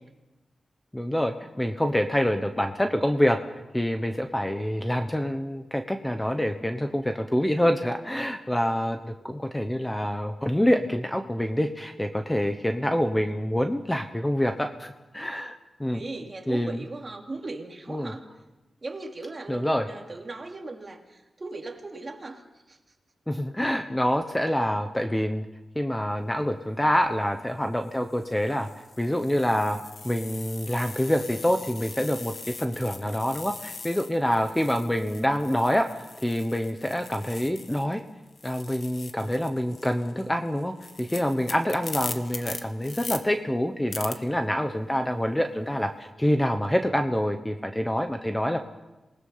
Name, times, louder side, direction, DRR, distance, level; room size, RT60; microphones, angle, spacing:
voice 1, 0.9-3.4 3.7-16.0 16.5-16.8 17.9-18.2 19.5-19.9 23.3-25.5 25.7-28.7 29.0-29.8 30.0-38.0 38.4-48.6, equal, 10° left, 6 dB, 1.1 m, -26 dB
voice 2, 15.9-18.2 18.8-22.8, right 3 dB, 30° right, 2 dB, 2.9 m, -38 dB
sound 1, 26.8-27.1 27.8-38.0 38.3-43.2 43.9-44.1, left 4 dB, 55° left, 1.5 m, -41 dB
27.5 x 19.5 x 5.7 m, 1.1 s
wide cardioid pair, 120°, 0 cm